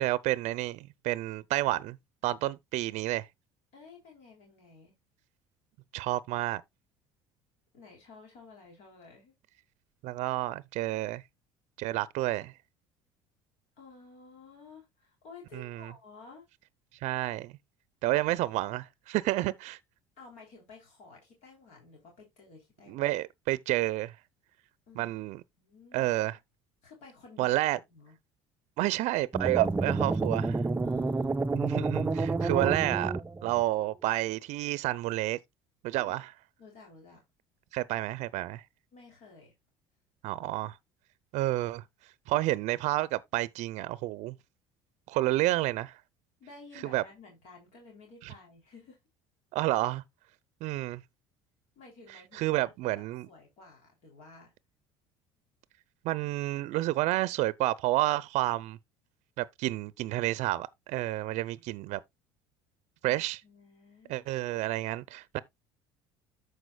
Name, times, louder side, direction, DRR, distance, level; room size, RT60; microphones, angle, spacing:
voice 1, 0.0-2.0 2.2-3.3 5.9-6.6 10.0-11.2 11.8-12.5 15.5-15.9 17.0-17.5 18.0-19.8 22.9-24.1 25.0-25.4 25.9-26.4 27.4-27.8 28.8-30.6 31.5-33.1 33.4-35.4 35.8-36.3 37.7-38.6 40.2-40.8 41.3-41.8 42.3-44.4 45.1-45.9 46.9-47.0 49.5-50.0 50.6-51.0 52.3-53.3 56.0-58.8 59.4-62.0 63.0-63.4 64.1-65.4, right 17 dB, 65° right, 0.6 m, -30 dB
voice 2, 3.7-4.9 7.7-9.3 13.8-16.5 20.2-23.1 24.9-25.2 25.6-26.1 26.8-27.6 27.9-28.2 30.8-31.4 36.0-36.1 36.6-37.2 38.9-39.5 46.4-49.0 51.7-54.5 63.0-64.3, left 4 dB, 65° left, 3.2 m, -53 dB
sound 1, 29.3-33.6, right 3 dB, 15° right, 0.5 m, -29 dB
14.0 x 4.8 x 2.2 m
supercardioid pair, 80°, 13 cm